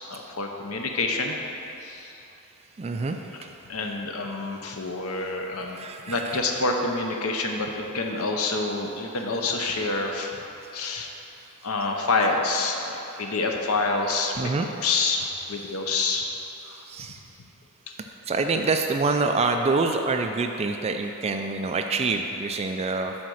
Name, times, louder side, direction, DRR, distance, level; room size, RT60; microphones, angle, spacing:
voice 1, 0.1-1.4 1.8-2.2 3.7-10.5 10.7-11.1 11.6-14.3 14.8-16.2 16.6-16.8, left 3 dB, 70° left, 2 dB, 0.8 m, -27 dB
voice 2, 2.8-3.6 5.7-6.4 10.6-10.8 14.4-14.7 16.7-17.2 18.3-23.1, right 3 dB, 30° right, 5 dB, 0.3 m, -26 dB
8.6 x 4.0 x 6.3 m, 3.0 s
head